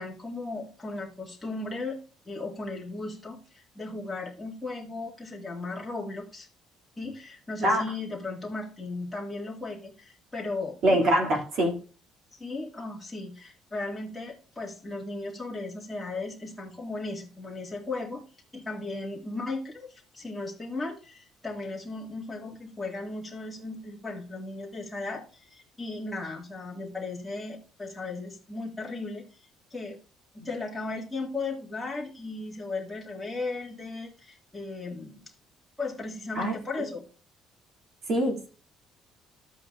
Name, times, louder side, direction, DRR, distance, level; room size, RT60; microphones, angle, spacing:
voice 1, 0.0-2.0 2.3-6.5 7.0-11.4 12.4-18.2 18.5-29.2 29.7-30.0 30.3-35.2 35.8-37.0, left 3 dB, 5° left, 1.9 m, -36 dB
voice 2, 10.8-11.7 36.4-36.6 38.1-38.5, equal, 50° right, 2.4 m, -23 dB
12.5 x 8.3 x 2.5 m
cardioid pair, 175°, 0 cm